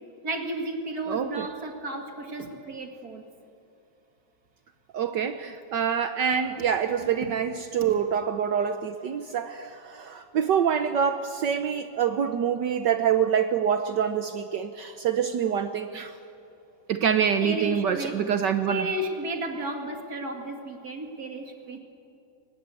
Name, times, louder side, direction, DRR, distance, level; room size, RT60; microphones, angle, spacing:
voice 1, 0.2-3.2 7.8-8.0 17.4-18.2 18.7-21.8, right 1 dB, 50° right, 4 dB, 2.5 m, -33 dB
voice 2, 1.1-1.5 4.9-16.1 16.9-18.9, right 8 dB, 65° right, 9 dB, 1.4 m, -26 dB
23.5 x 20.0 x 8.3 m, 2.7 s
omnidirectional pair, 2.2 m